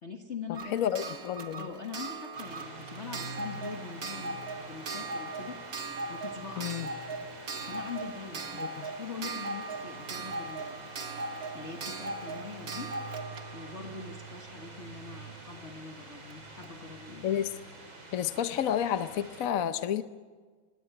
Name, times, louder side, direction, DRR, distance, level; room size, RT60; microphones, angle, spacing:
voice 1, 0.0-1.2 1.6-5.6 6.1-6.7 7.6-10.9 11.5-12.9 13.5-17.2, left 5 dB, 35° left, 4 dB, 1.6 m, -43 dB
Clock, 0.5-15.1 16.3-16.4 16.6-16.7, right 3 dB, 50° right, 1.9 m, -39 dB
voice 2, 0.7-1.6 6.6-6.9 8.6-8.9 17.2-17.5 18.1-20.0, left 10 dB, 60° left, 11 dB, 0.9 m, -30 dB
sound 1, 2.3-19.5, right 2 dB, 70° right, 5.2 m, -47 dB
20.5 x 17.5 x 9.9 m, 1.5 s
omnidirectional pair, 2.2 m